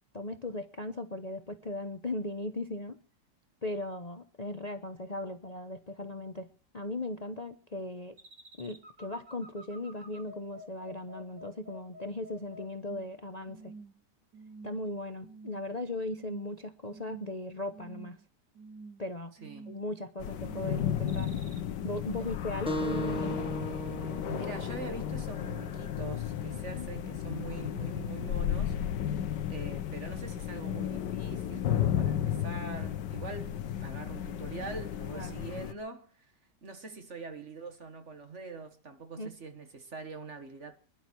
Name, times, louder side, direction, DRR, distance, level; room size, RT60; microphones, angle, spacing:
voice 1, 0.1-3.0 3.6-6.5 6.7-8.2 8.6-13.7 14.6-18.2 19.0-19.3 19.7-21.3 21.8-23.5 35.1-35.4 39.2-39.3, left 2 dB, 30° left, 0.9 m, -38 dB
sound 1, 8.2-13.1 13.5-14.0 14.3-14.8 15.2-15.6 16.0-16.6 16.9-17.4 17.7-18.2 18.5-19.0 19.4-19.9 20.3-20.7 21.1-21.6, right 2 dB, 75° right, 3.3 m, -49 dB
sound 2, 20.2-35.7, left 10 dB, 80° left, 1.6 m, -34 dB
sound 3, 22.7-27.8, equal, 5° right, 1.6 m, -39 dB
voice 2, 24.3-28.8 29.5-36.3 36.6-40.8, right 4 dB, 45° right, 2.0 m, -43 dB
26.0 x 11.5 x 4.6 m
omnidirectional pair, 1.8 m